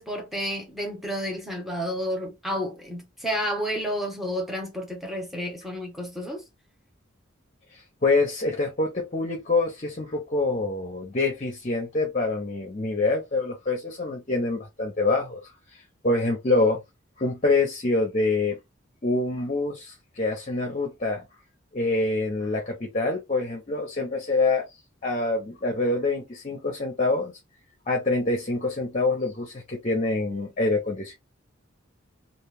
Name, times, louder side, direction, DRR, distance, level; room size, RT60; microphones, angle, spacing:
voice 1, 0.0-6.4, equal, ahead, 1.0 m, -31 dB
voice 2, 8.0-15.4 16.0-16.8 17.2-18.6 19.0-21.2 21.7-24.7 25.0-27.3 27.9-31.2, left 3 dB, 35° left, 0.8 m, -25 dB
2.5 x 2.3 x 3.4 m
head